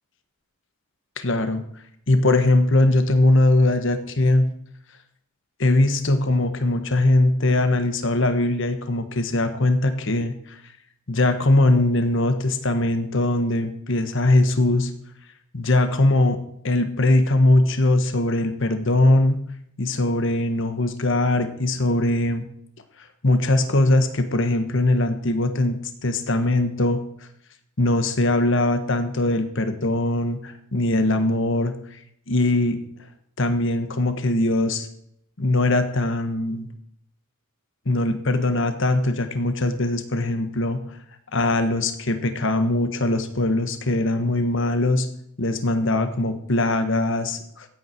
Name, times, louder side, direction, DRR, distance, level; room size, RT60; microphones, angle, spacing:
voice 1, 1.2-1.6 2.1-4.4 5.6-10.6 11.1-14.9 15.5-19.4 19.8-22.4 23.2-27.0 27.8-31.7 32.3-32.8 33.4-34.9 35.4-36.7 37.8-40.8 41.3-45.1 45.4-47.7, left 2 dB, 65° left, 8 dB, 1.4 m, -21 dB
16.0 x 8.7 x 4.6 m, 0.71 s
head